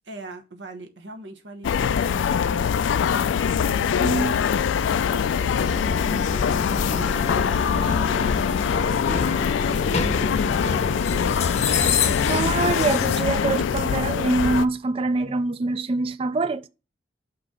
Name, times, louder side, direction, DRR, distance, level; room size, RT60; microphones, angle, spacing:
voice 1, 0.1-2.7 3.5-4.5 4.9-5.8 6.3-8.6 8.8-11.3, right 2 dB, 75° right, 1.0 m, -40 dB
sound 1, 1.6-14.7, left 7 dB, 85° left, 0.3 m, -23 dB
voice 2, 4.0-4.4 11.8-16.7, right 3 dB, 30° right, 0.3 m, -25 dB
sound 2, 5.5-13.2, left 4 dB, 35° left, 0.7 m, -28 dB
5.9 x 3.2 x 5.1 m
head